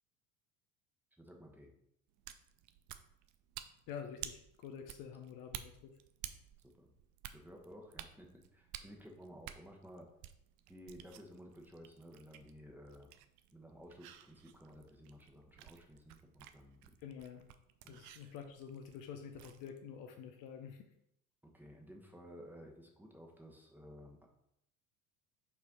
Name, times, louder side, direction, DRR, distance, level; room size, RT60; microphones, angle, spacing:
voice 1, 1.2-1.7 6.8-6.9 7.3-10.1 10.7-13.1 13.5-17.0 17.8-18.0 21.4-24.3, equal, 5° right, 0 dB, 1.2 m, -55 dB
sound 1, 2.1-19.7, right 12 dB, 40° right, 0.6 m, -53 dB
voice 2, 3.9-5.9 17.0-17.4 17.9-20.9, left 7 dB, 45° left, 5 dB, 0.7 m, -48 dB
5.5 x 4.7 x 4.1 m, 0.78 s
figure-of-eight pair, 65°, 45 cm